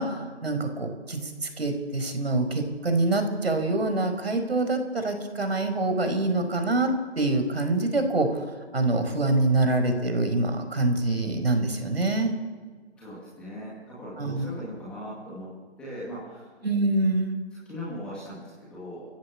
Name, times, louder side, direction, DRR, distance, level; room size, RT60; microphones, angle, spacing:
voice 1, 0.0-8.4 8.7-12.3 14.2-14.5 16.6-17.4, right 2 dB, 60° right, 7 dB, 5.1 m, -25 dB
voice 2, 13.0-15.5 15.8-16.5 17.6-19.0, equal, 5° left, -8 dB, 2.0 m, -39 dB
29.5 x 15.0 x 8.5 m, 1.5 s
figure-of-eight pair, 175°, 35 cm